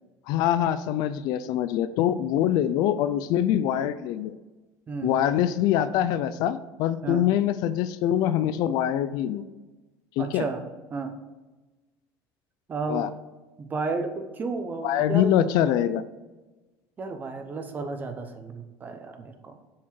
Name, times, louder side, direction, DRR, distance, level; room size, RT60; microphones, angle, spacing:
voice 1, 0.3-4.3 5.0-9.4 10.2-10.4 12.9-13.1 14.8-16.0, left 11 dB, 60° left, 13 dB, 0.4 m, -24 dB
voice 2, 10.2-10.6 10.9-11.1 12.7-13.1 13.6-15.4 17.0-19.6, right 3 dB, 25° right, 7 dB, 0.8 m, -32 dB
7.3 x 4.4 x 4.4 m, 1.2 s
cardioid pair, 155°, 8 cm